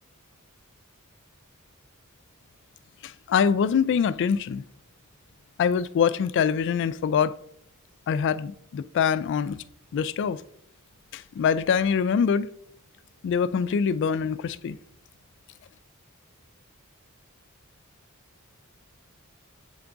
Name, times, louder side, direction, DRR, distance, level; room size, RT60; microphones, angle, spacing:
voice 1, 3.3-4.6 5.6-7.3 8.1-9.6 9.9-10.4 11.1-12.5 13.2-14.8, left 7 dB, 55° left, 0.3 m, -24 dB
7.9 x 3.8 x 3.5 m
head